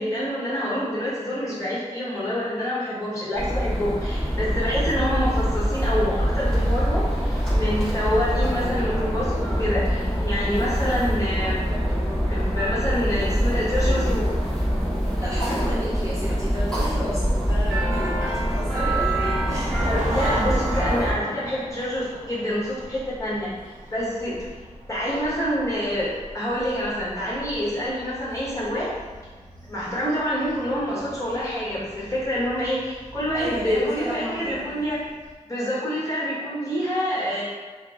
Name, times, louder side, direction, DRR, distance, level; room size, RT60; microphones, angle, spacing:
voice 1, 0.0-11.6 12.3-14.4 19.8-24.3 24.9-28.9 29.7-35.0 35.4-37.4, equal, 25° left, -10 dB, 1.3 m, -27 dB
sound 1, 3.3-21.1, equal, 5° left, 1.2 m, -24 dB
voice 2, 15.2-20.4 33.3-34.8, equal, 25° right, -8 dB, 0.7 m, -33 dB
sound 2, 19.3-35.3, right 1 dB, 85° right, 0.6 m, -38 dB
2.9 x 2.0 x 3.4 m, 1.4 s
wide cardioid pair, 75°, 12 cm